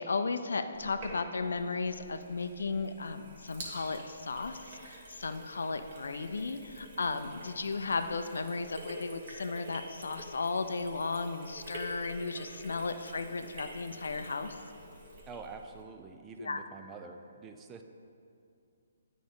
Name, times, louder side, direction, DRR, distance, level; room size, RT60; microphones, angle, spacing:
voice 1, 0.0-14.6 16.4-16.6, left 4 dB, 75° left, 9 dB, 0.4 m, -35 dB
Sink (filling or washing), 0.7-15.8, right 1 dB, 45° right, 1.5 m, -48 dB
voice 2, 15.3-17.8, right 4 dB, 20° right, 5 dB, 0.4 m, -46 dB
8.5 x 5.0 x 3.8 m, 2.5 s
figure-of-eight pair, 140°, 0 cm